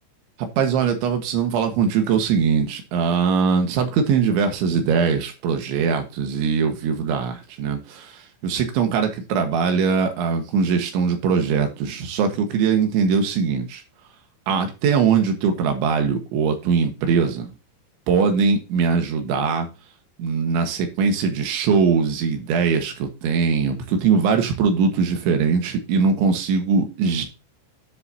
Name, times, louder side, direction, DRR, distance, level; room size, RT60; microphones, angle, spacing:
voice 1, 0.4-13.8 14.5-17.5 18.1-19.7 20.2-27.2, right 5 dB, 85° right, 5 dB, 3.9 m, -21 dB
10.5 x 7.7 x 2.8 m, 0.28 s
omnidirectional pair, 5.2 m